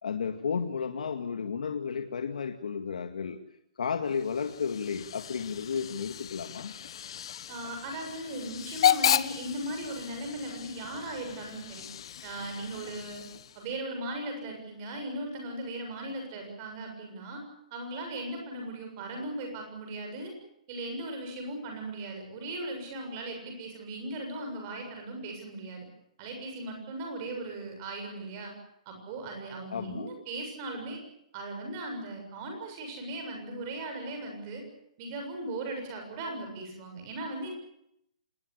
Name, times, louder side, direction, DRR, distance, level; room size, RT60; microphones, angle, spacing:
voice 1, 0.0-3.4 3.8-6.7 29.7-30.1, left 6 dB, 80° left, 5 dB, 2.2 m, -33 dB
Hiss / Train / Alarm, 4.1-13.7, left 10 dB, 40° left, 0.9 m, -33 dB
voice 2, 7.5-11.9 12.2-13.3 13.6-17.4 17.7-20.3 20.7-25.9 26.2-28.5 28.9-31.0 31.3-34.6 35.0-37.5, right 2 dB, 25° right, 3 dB, 7.2 m, -38 dB
26.0 x 20.0 x 8.2 m, 0.77 s
hypercardioid pair, 180°, 4 cm